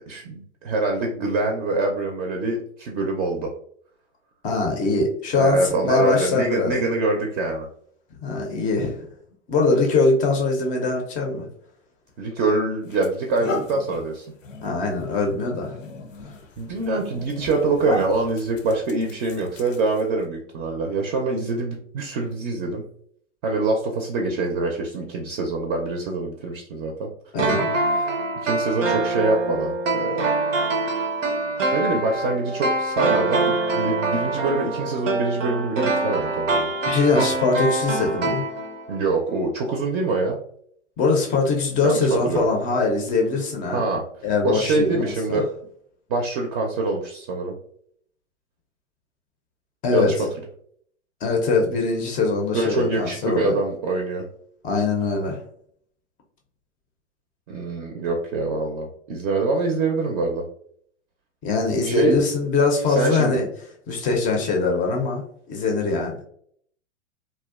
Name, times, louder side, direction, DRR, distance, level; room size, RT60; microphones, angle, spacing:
voice 1, 0.1-3.5 5.3-7.7 12.2-14.3 16.6-22.8 23.4-27.1 28.4-30.3 31.7-36.7 38.9-40.4 41.8-42.5 43.7-44.0 44.4-45.5 46.1-47.5 49.9-50.3 52.5-54.2 57.5-60.4 61.8-62.1 62.9-63.4, right 3 dB, 45° right, 1 dB, 0.5 m, -25 dB
voice 2, 4.4-6.8 8.2-9.0 9.5-11.5 14.6-15.8 27.3-28.2 36.9-38.4 41.0-43.8 44.2-45.4 49.8-50.1 51.2-53.6 54.6-55.4 61.4-63.5 63.9-65.2 65.5-66.2, left 3 dB, 20° left, 1 dB, 0.4 m, -22 dB
sound 1, 12.1-12.3 12.8-20.2, left 2 dB, 90° left, 0.5 m, -36 dB
sound 2, 27.4-39.0 39.3-39.4, right 2 dB, 90° right, 0.6 m, -24 dB
2.6 x 2.1 x 2.3 m, 0.64 s
hypercardioid pair, 105°, 37 cm